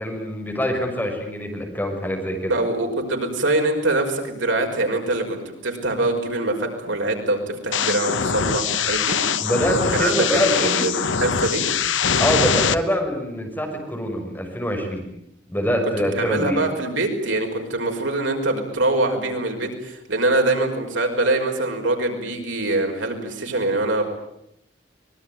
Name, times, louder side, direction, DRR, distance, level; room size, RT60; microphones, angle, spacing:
voice 1, 0.0-2.5 9.4-10.9 12.2-15.1 15.5-16.6, equal, 10° left, 1 dB, 6.2 m, -24 dB
voice 2, 2.5-9.2 9.9-11.6 16.1-24.0, right 2 dB, 85° right, 3 dB, 5.6 m, -24 dB
sound 1, 7.7-12.7, left 6 dB, 85° left, 1.1 m, -22 dB
24.5 x 21.5 x 9.3 m, 0.76 s
head